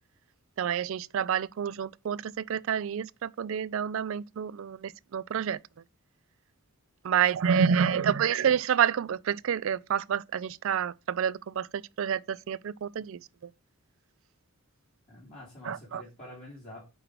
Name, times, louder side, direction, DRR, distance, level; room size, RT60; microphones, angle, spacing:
voice 1, 0.6-5.6 7.0-11.7 12.0-13.2 15.6-16.0, right 8 dB, 60° right, 0.3 m, -28 dB
voice 2, 7.1-8.2 15.1-16.8, left 1 dB, 30° left, 3.0 m, -47 dB
8.7 x 3.2 x 4.6 m
head